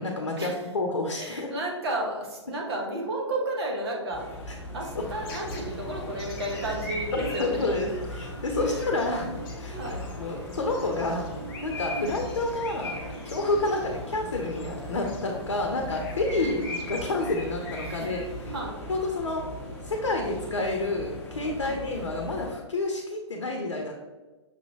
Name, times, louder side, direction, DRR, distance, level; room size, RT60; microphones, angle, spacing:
voice 1, 0.0-1.5 4.5-4.6 5.0-5.1 7.1-9.3 9.6-11.3 11.6-13.0 13.2-18.3 18.9-19.4 19.8-24.0, left 2 dB, 70° left, 2 dB, 0.7 m, -29 dB
voice 2, 1.1-4.2 4.7-7.7 8.6-8.9 9.7-10.0 11.9-12.1 13.6-13.7 15.5-15.7 16.4-16.5 17.8-18.1 18.5-18.7 21.6-21.8, right 1 dB, 55° right, 0 dB, 1.2 m, -32 dB
sound 1, 4.1-22.5, equal, 10° left, 1.1 m, -40 dB
sound 2, 4.9-18.5, left 1 dB, 45° left, 1.0 m, -40 dB
6.1 x 2.7 x 2.9 m, 1.2 s
figure-of-eight pair, 120°, 15 cm